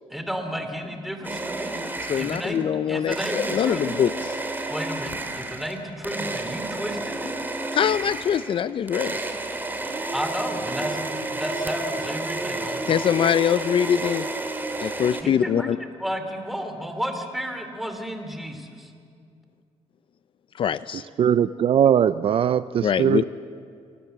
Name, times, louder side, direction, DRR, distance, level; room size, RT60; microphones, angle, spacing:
voice 1, 0.1-4.0 4.7-7.3 10.1-13.0 15.2-18.9, equal, ahead, 6 dB, 2.8 m, -32 dB
sound 1, 1.2-2.7 3.1-15.2, right 2 dB, 15° right, 2.3 m, -31 dB
voice 2, 2.1-4.3 7.7-9.2 12.9-14.3 14.8-15.8 20.5-21.0 22.8-23.2, left 9 dB, 50° left, 16 dB, 0.5 m, -23 dB
voice 3, 21.2-23.2, right 9 dB, 55° right, 15 dB, 0.5 m, -20 dB
26.5 x 18.0 x 8.0 m, 2.4 s
cardioid pair, 110°, 11 cm